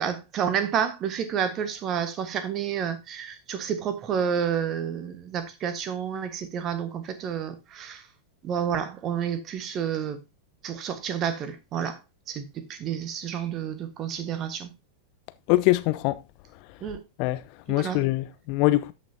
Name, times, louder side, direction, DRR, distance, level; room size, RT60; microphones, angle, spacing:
voice 1, 0.0-8.1 8.4-10.2 10.6-12.0 12.3-14.7 16.8-17.0 17.7-18.0, right 8 dB, 30° right, 1.5 m, -30 dB
voice 2, 15.5-16.2 17.2-17.4 17.7-18.9, left 18 dB, 45° left, 0.5 m, -23 dB
13.0 x 5.9 x 2.8 m
figure-of-eight pair, 90°, 0 cm